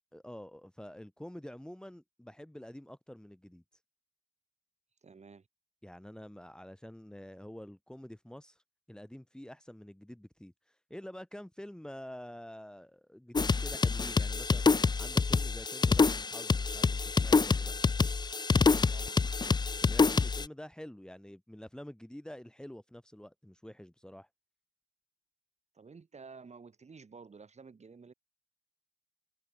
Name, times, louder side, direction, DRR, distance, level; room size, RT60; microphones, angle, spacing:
voice 1, 0.1-3.6 5.8-8.6 8.9-14.6 15.0-17.7 19.7-24.3, equal, 5° left, 3.7 m, -48 dB
voice 2, 5.0-5.5 18.9-19.3 25.7-28.1, right 5 dB, 35° right, 6.2 m, -52 dB
sound 1, 13.3-20.5, left 4 dB, 20° left, 0.6 m, -27 dB
cardioid pair, 90°, 20 cm